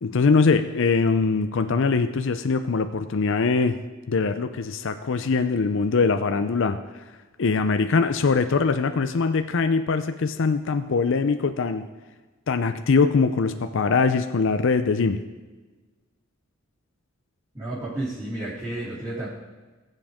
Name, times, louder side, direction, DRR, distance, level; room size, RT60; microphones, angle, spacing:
voice 1, 0.0-3.8 4.1-7.0 7.4-11.9 12.5-15.2, left 4 dB, 65° left, 8 dB, 0.5 m, -22 dB
voice 2, 17.5-19.3, right 1 dB, 20° right, -12 dB, 3.4 m, -31 dB
20.0 x 7.7 x 3.6 m, 1.3 s
head